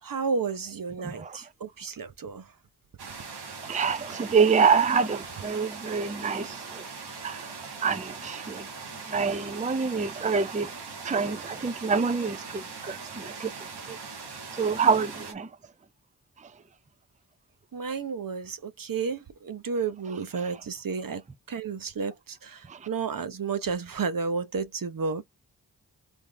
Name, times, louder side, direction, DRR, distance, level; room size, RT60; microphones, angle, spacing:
voice 1, 0.0-2.4 17.7-21.2 21.5-25.2, right 5 dB, 60° right, 0.9 m, -32 dB
voice 2, 1.0-1.4 3.6-6.8 7.2-7.5 7.8-8.7 9.1-10.7 11.0-14.0 14.5-15.5 22.7-22.8, right 5 dB, 20° right, 0.5 m, -26 dB
sound 1, 3.0-15.3, right 4 dB, 85° right, 1.5 m, -41 dB
3.6 x 3.5 x 3.3 m
cardioid pair, 40°, 38 cm